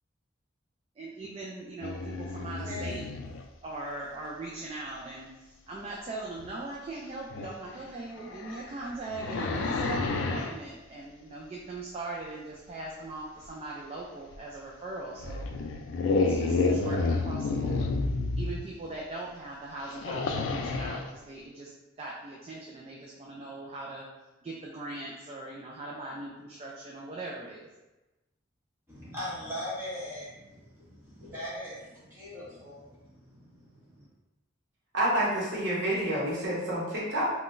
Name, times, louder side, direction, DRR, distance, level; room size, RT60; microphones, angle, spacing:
voice 1, 1.0-3.0 3.6-15.4 16.2-17.9 18.4-24.1 24.4-27.7, right 2 dB, 30° right, -3 dB, 0.3 m, -40 dB
sound 1, 1.8-3.4 6.4-6.5 7.3-7.5 8.2-10.6 14.3-14.4 15.2-18.6 19.8-21.1, left 3 dB, 75° left, 0.3 m, -30 dB
voice 2, 28.9-34.1, left 1 dB, 15° right, -11 dB, 1.3 m, -40 dB
voice 3, 34.9-37.2, right 1 dB, 60° right, -6 dB, 0.9 m, -28 dB
3.7 x 2.2 x 2.5 m, 1.1 s
head